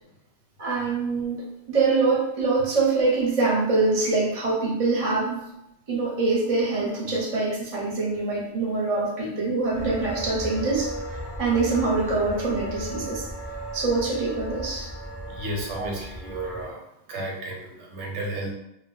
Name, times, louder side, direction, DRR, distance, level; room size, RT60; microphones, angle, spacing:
voice 1, 0.6-5.4 5.9-10.9 11.4-13.2 13.7-14.9 15.8-15.9, right 3 dB, 40° right, -3 dB, 0.7 m, -24 dB
sound 1, 9.7-16.7, right 1 dB, 15° right, 0.3 m, -35 dB
voice 2, 15.3-16.8 17.1-18.5, right 1 dB, 80° right, -1 dB, 0.9 m, -33 dB
2.1 x 2.1 x 3.8 m, 0.82 s
omnidirectional pair, 1.2 m